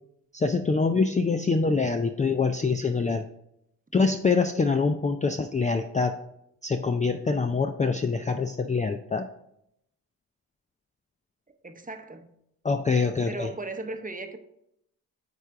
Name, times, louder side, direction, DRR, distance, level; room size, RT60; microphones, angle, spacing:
voice 1, 0.3-3.2 3.9-6.2 6.6-9.3 12.6-13.5, left 4 dB, 20° left, 7 dB, 0.4 m, -25 dB
voice 2, 11.6-12.3 13.2-14.4, right 2 dB, 20° right, 7 dB, 0.8 m, -36 dB
9.1 x 3.4 x 3.6 m, 0.78 s
supercardioid pair, 45°, 40 cm